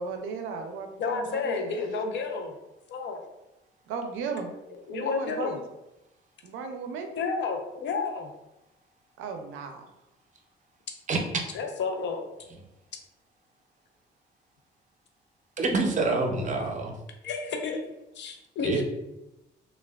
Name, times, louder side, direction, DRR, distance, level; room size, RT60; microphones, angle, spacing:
voice 1, 0.0-1.9 3.9-4.5 4.9-5.6 6.4-7.1 9.2-9.9, right 5 dB, 90° right, 5 dB, 0.4 m, -36 dB
voice 2, 1.0-2.5 2.9-3.2 4.9-5.6 7.2-8.3 11.5-12.2 17.2-17.8 18.2-18.8, left 4 dB, 65° left, 3 dB, 0.5 m, -30 dB
voice 3, 11.1-11.4 15.6-16.9 18.6-18.8, right 3 dB, 40° right, 3 dB, 0.5 m, -26 dB
3.3 x 2.2 x 2.2 m, 0.92 s
cardioid pair, 90°, 20 cm